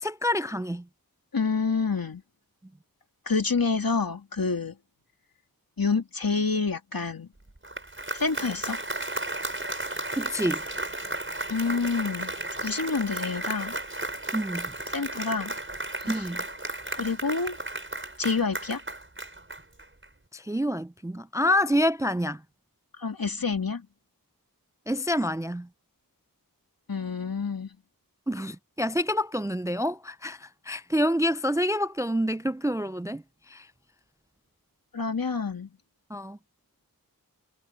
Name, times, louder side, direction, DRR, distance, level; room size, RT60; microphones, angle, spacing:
voice 1, 0.0-0.8 10.1-10.6 14.3-14.7 16.1-16.4 20.3-22.4 24.9-25.7 28.3-33.7 36.1-36.4, equal, 10° right, 0.3 m, -27 dB
voice 2, 1.3-2.2 3.3-4.8 5.8-7.3 8.1-8.8 11.5-13.8 14.9-15.5 16.0-16.2 16.9-17.6 18.2-18.8 23.0-23.9 26.9-27.8 34.9-35.7, left 4 dB, 75° left, 2.7 m, -28 dB
Applause, 7.5-20.1, right 2 dB, 35° right, 5.8 m, -34 dB
wide cardioid pair, 55°, 36 cm